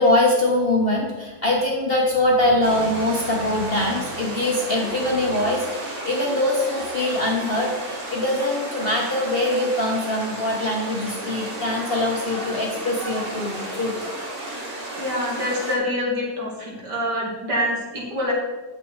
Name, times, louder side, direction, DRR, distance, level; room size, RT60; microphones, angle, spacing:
voice 1, 0.0-14.3, left 1 dB, 35° left, -2 dB, 1.3 m, -23 dB
sound 1, 2.6-15.7, right 1 dB, 30° right, 2.3 m, -33 dB
voice 2, 15.0-18.3, left 1 dB, 60° right, -3 dB, 3.1 m, -26 dB
9.1 x 7.7 x 4.8 m, 1.2 s
omnidirectional pair, 2.0 m